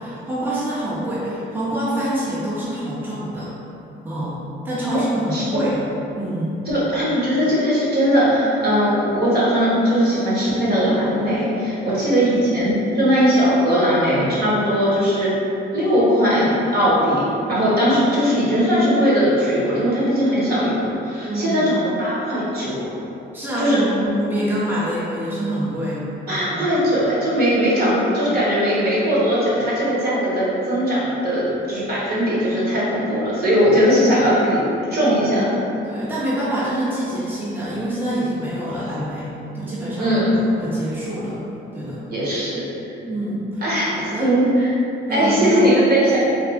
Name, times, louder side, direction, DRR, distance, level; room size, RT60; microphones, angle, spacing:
voice 1, 0.0-3.5 4.0-4.4 4.6-5.7 6.1-6.6 21.2-21.6 23.3-26.7 35.8-41.4 41.7-42.1 43.1-43.6 43.9-44.3 45.1-45.8, right 1 dB, 10° right, -9 dB, 0.7 m, -26 dB
voice 2, 5.3-5.6 6.6-15.3 15.7-17.2 17.5-22.9 23.6-23.8 26.3-35.6 40.0-40.3 42.1-42.6 43.6-44.7 45.1-46.2, equal, 50° right, -8 dB, 1.4 m, -19 dB
3.4 x 2.3 x 3.5 m, 2.8 s
cardioid pair, 90°, 20 cm